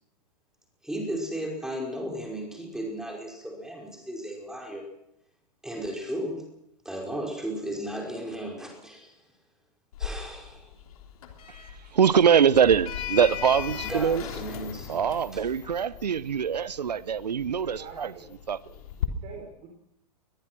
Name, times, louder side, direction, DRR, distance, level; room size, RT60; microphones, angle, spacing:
voice 1, 0.8-4.9 5.6-6.5 6.9-9.2 10.0-10.7 13.8-14.9 15.3-15.4, right 1 dB, ahead, 5.2 m, -35 dB
Sliding door, 9.9-19.1, left 9 dB, 60° left, 3.4 m, -38 dB
voice 2, 11.9-14.2 14.9-18.1 18.5-18.6, right 7 dB, 75° right, 1.0 m, -23 dB
voice 3, 17.6-18.3 18.7-19.7, right 6 dB, 35° right, 4.4 m, -46 dB
22.0 x 22.0 x 6.2 m
figure-of-eight pair, 110°, 21 cm